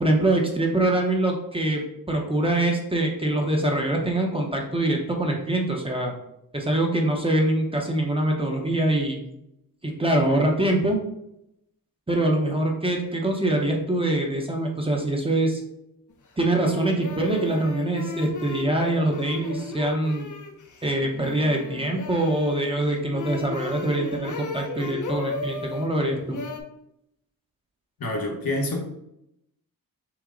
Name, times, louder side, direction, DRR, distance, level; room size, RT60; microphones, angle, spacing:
voice 1, 0.0-1.8 2.1-6.1 6.5-9.2 9.8-11.0 12.1-15.6 16.4-20.3 20.8-26.4, right 1 dB, 15° right, 1 dB, 0.7 m, -24 dB
sound 1, 16.1-16.2 16.6-25.9 26.3-26.6, left 3 dB, 55° left, 0.6 m, -35 dB
voice 2, 28.0-28.8, left 1 dB, 70° left, 0 dB, 1.1 m, -27 dB
6.0 x 2.1 x 3.7 m, 0.81 s
wide cardioid pair, 125°, 36 cm